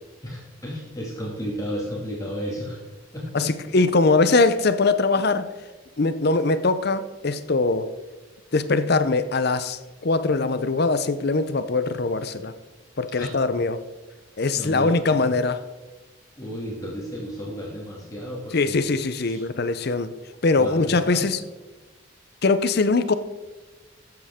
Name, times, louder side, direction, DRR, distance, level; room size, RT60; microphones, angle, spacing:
voice 1, 0.2-2.8 3.1-3.5 13.2-13.3 14.5-15.2 16.4-18.8 19.2-19.4 20.6-21.2, equal, 15° left, -5 dB, 2.1 m, -33 dB
voice 2, 3.3-5.5 6.0-7.9 8.5-12.5 13.0-13.8 14.4-15.6 18.5-20.1 20.4-21.4 22.4-23.1, left 3 dB, 55° left, 12 dB, 0.7 m, -22 dB
14.0 x 8.0 x 3.6 m, 1.2 s
head